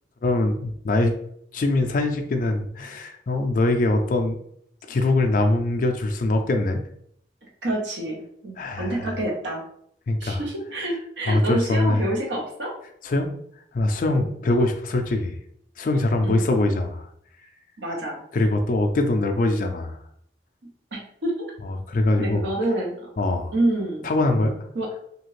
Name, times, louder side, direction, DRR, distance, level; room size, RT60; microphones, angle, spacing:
voice 1, 0.2-1.2 1.5-4.4 4.9-6.8 8.6-9.1 10.1-10.4 11.2-12.0 13.0-13.3 13.7-15.4 15.8-17.1 18.3-20.0 21.7-22.4 23.2-23.5 24.0-24.6, left 2 dB, 45° left, 5 dB, 0.3 m, -22 dB
voice 2, 7.6-9.6 10.2-12.7 14.1-14.3 16.2-16.5 17.8-18.2 20.9-21.5 22.2-23.1 23.5-24.1 24.7-24.9, right 1 dB, 75° right, -1 dB, 0.8 m, -27 dB
2.8 x 2.4 x 3.1 m, 0.67 s
head